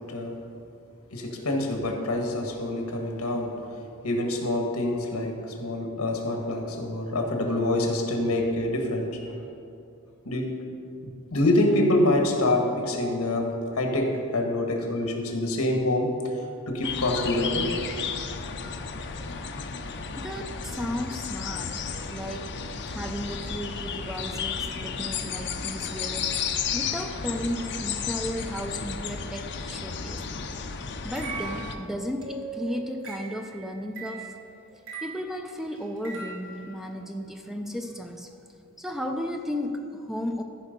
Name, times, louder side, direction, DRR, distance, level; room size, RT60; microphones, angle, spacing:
voice 1, 1.1-3.5 4.0-9.4 10.3-10.5 11.3-13.5 13.8-16.1 16.7-17.8, left 1 dB, 70° left, 2 dB, 1.6 m, -26 dB
sound 1, 16.8-31.8, left 6 dB, 55° left, 0.7 m, -33 dB
voice 2, 20.2-21.7 22.1-22.5 22.9-26.4 26.7-30.2 31.0-34.3 34.7-38.3 38.8-40.4, equal, ahead, 4 dB, 0.5 m, -34 dB
sound 2, 31.2-36.6, right 5 dB, 60° right, 1.6 m, -39 dB
14.5 x 5.2 x 5.3 m, 2.6 s
head